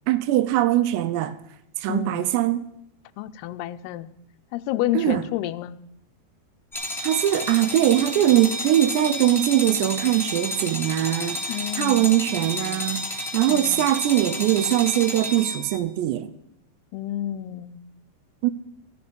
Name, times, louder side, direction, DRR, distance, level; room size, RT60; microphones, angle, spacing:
voice 1, 0.1-1.4 1.8-2.6 4.9-5.2 7.0-16.3 18.4-18.5, right 13 dB, 85° right, 2.9 m, -22 dB
voice 2, 1.9-2.2 3.2-4.1 4.5-5.8 11.5-12.2 13.5-13.9 16.9-17.8, left 13 dB, 80° left, 2.5 m, -30 dB
sound 1, 6.7-15.8, left 1 dB, ahead, 1.1 m, -31 dB
14.0 x 13.5 x 5.3 m
omnidirectional pair, 4.9 m